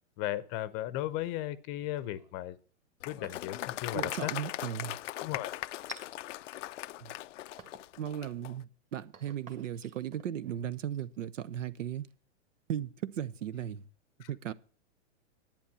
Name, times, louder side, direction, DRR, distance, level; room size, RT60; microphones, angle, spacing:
voice 1, 0.2-2.6 3.0-4.3 5.2-5.5 14.2-14.3, left 14 dB, 30° left, 0.7 m, -36 dB
sound 1, 1.7-2.5 3.0-3.7 4.1-4.7 5.9-6.1 6.8-7.2 7.6-7.9 8.4-12.1, right 5 dB, 20° right, 1.5 m, -54 dB
Applause, 3.0-8.5, left 15 dB, 75° left, 0.5 m, -39 dB
voice 2, 3.9-5.0 7.0-7.1 8.0-12.1 12.7-13.9 14.3-14.5, right 10 dB, 80° right, 0.9 m, -36 dB
11.0 x 8.7 x 7.0 m
hypercardioid pair, 140°, 37 cm